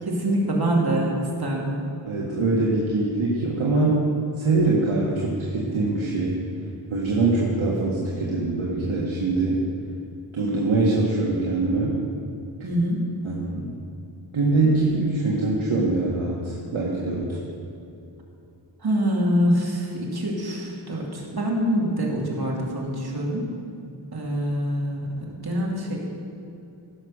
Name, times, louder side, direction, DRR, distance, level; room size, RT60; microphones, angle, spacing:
voice 1, 0.0-1.9 12.6-13.1 18.8-23.4 24.1-26.0, equal, 50° right, -2 dB, 2.7 m, -25 dB
voice 2, 2.1-4.1 4.4-6.4 6.9-9.7 10.3-12.0 13.2-13.7 14.3-17.4, right 3 dB, 85° right, -4 dB, 1.8 m, -23 dB
17.0 x 6.1 x 6.5 m, 2.8 s
wide cardioid pair, 70°, 47 cm